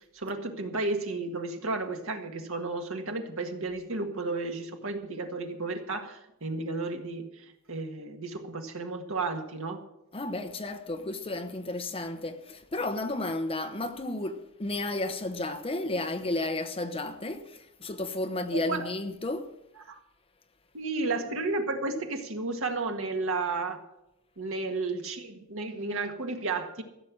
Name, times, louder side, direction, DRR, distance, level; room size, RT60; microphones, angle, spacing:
voice 1, 0.1-7.3 7.7-9.8 18.5-18.9 19.9-20.0 20.7-23.8 24.4-26.8, right 3 dB, 65° right, 1.8 m, -32 dB
voice 2, 10.1-19.5, left 2 dB, 25° left, 1.0 m, -32 dB
15.0 x 7.8 x 7.6 m
head